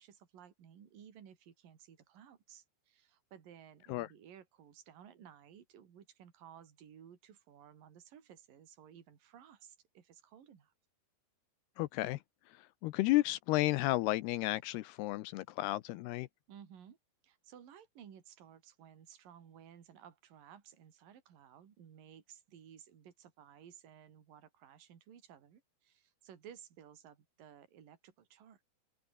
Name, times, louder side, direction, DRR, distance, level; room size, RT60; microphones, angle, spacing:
voice 1, 0.0-10.7 16.5-17.0 17.2-28.6, right 9 dB, 55° right, 4.4 m, -57 dB
voice 2, 11.8-12.2 12.8-16.3, left 18 dB, 80° left, 2.5 m, -32 dB
open air
omnidirectional pair, 5.0 m